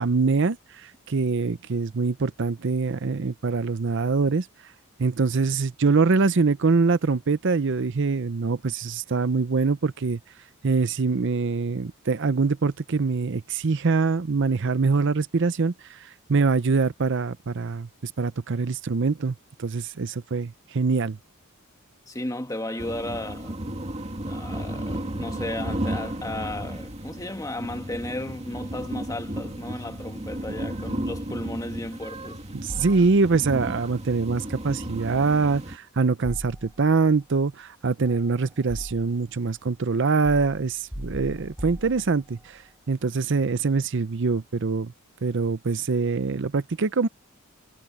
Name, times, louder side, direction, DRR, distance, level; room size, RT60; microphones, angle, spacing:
voice 1, 0.0-4.5 5.0-10.2 10.6-21.2 32.5-42.6 42.9-44.9 45.2-47.1, right 4 dB, 55° right, 0.6 m, -24 dB
voice 2, 22.1-23.6 24.3-32.4, left 1 dB, 15° left, 1.9 m, -34 dB
sound 1, 22.8-35.8, right 1 dB, 30° right, 2.3 m, -34 dB
sound 2, 32.7-33.6 36.2-37.1 38.0-39.3 40.2-42.5, equal, 10° right, 4.8 m, -39 dB
head